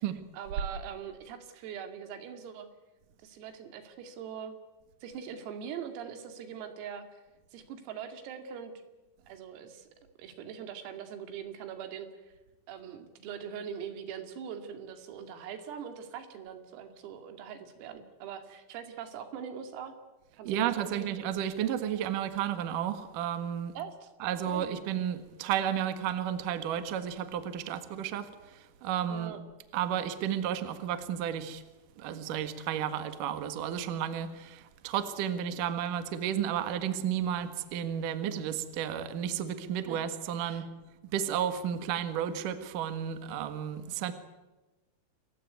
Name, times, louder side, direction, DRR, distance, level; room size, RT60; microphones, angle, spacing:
voice 1, 0.3-2.7 3.2-4.6 5.0-7.2 7.5-8.7 9.3-9.9 10.2-12.3 12.7-19.9 20.3-21.2 23.8-24.1 24.5-24.8 29.1-29.4 39.7-40.0 40.4-40.7, right 8 dB, 85° right, 7 dB, 5.0 m, -42 dB
voice 2, 20.4-23.7 24.2-29.4 29.7-31.6 32.0-40.7 41.1-44.1, right 9 dB, 60° right, 10 dB, 2.4 m, -32 dB
28.5 x 15.5 x 9.4 m, 1.1 s
omnidirectional pair, 5.9 m